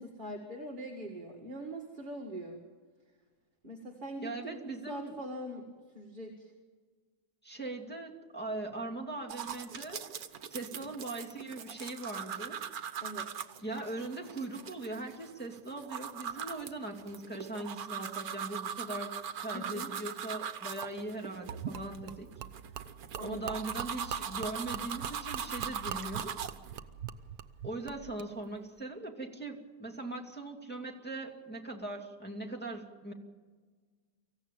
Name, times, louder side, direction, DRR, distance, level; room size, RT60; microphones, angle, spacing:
voice 1, 0.0-2.6 3.6-5.7 5.9-6.5 13.0-13.3 19.5-19.9 23.2-23.4, equal, 30° right, 1 dB, 2.2 m, -42 dB
voice 2, 4.2-5.1 7.4-10.1 10.5-12.6 13.6-19.1 19.4-22.3 23.2-26.4 27.6-33.1, right 2 dB, 5° left, -2 dB, 2.4 m, -40 dB
sound 1, 9.3-26.8, right 8 dB, 70° right, 1.5 m, -41 dB
Gurgling / Liquid, 21.5-28.3, right 9 dB, 90° right, 1.4 m, -43 dB
24.5 x 15.5 x 9.1 m, 1.5 s
omnidirectional pair, 1.6 m